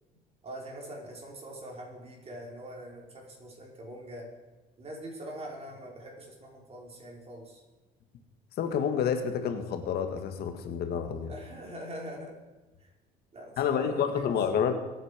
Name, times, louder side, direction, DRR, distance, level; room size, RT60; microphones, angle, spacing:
voice 1, 0.4-4.3 4.8-7.6 11.3-12.3 13.3-14.4, right 1 dB, 35° right, -1 dB, 4.9 m, -43 dB
voice 2, 8.6-11.3 13.6-14.7, left 7 dB, 70° left, 7 dB, 1.9 m, -29 dB
22.5 x 9.2 x 5.2 m, 1.2 s
cardioid pair, 110°, 17 cm